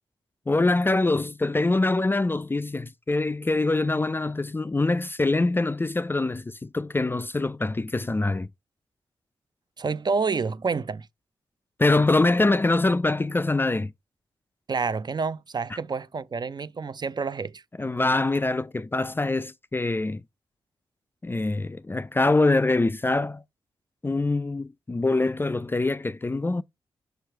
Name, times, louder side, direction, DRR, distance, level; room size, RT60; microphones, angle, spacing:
voice 1, 0.5-8.5 11.8-13.9 17.8-20.2 21.2-23.4 24.0-26.6, left 2 dB, 20° left, 0.4 m, -24 dB
voice 2, 9.8-11.1 14.7-17.6, right 4 dB, 45° right, 0.5 m, -28 dB
6.7 x 3.1 x 4.5 m
supercardioid pair, 40°, 10 cm